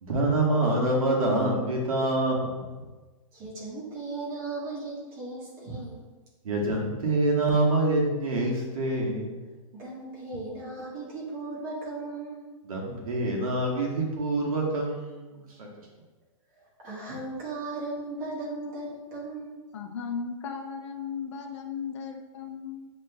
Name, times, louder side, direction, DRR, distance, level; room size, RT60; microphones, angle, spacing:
voice 1, 0.0-2.8 6.4-9.4 12.6-15.7, right 2 dB, 80° right, -1 dB, 1.3 m, -26 dB
voice 2, 3.3-6.0 9.7-12.5 16.5-19.6, right 2 dB, 25° right, -6 dB, 1.3 m, -37 dB
voice 3, 19.7-22.9, left 6 dB, 55° left, 4 dB, 0.5 m, -36 dB
7.2 x 3.0 x 2.2 m, 1.2 s
hypercardioid pair, 175°, 18 cm